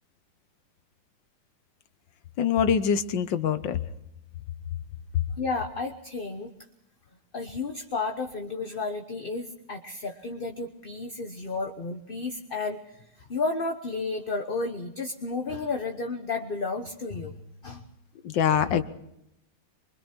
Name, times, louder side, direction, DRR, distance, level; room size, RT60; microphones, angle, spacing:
voice 1, 2.4-3.8 18.2-18.8, left 7 dB, 85° left, 11 dB, 1.8 m, -24 dB
voice 2, 5.3-6.5 7.3-17.4 17.6-17.8, left 3 dB, 35° left, 5 dB, 1.1 m, -32 dB
24.5 x 24.5 x 4.5 m, 0.81 s
omnidirectional pair, 2.0 m